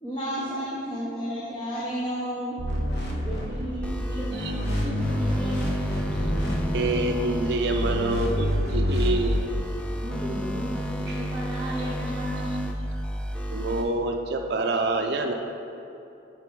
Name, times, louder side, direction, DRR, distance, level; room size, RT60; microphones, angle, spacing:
voice 1, 0.0-2.6, equal, 25° left, -7 dB, 0.8 m, -31 dB
sound 1, 2.6-4.0 4.3-7.2 7.7-9.4, equal, 65° left, 1.0 m, -27 dB
voice 2, 3.2-4.9 5.2-5.9 10.0-12.7, right 1 dB, 20° right, -7 dB, 0.7 m, -35 dB
sound 2, 3.8-13.8, equal, 5° left, 0.3 m, -31 dB
voice 3, 6.7-9.4 13.5-15.3, right 2 dB, 60° right, 2 dB, 0.4 m, -26 dB
6.8 x 4.2 x 4.6 m, 2.8 s
head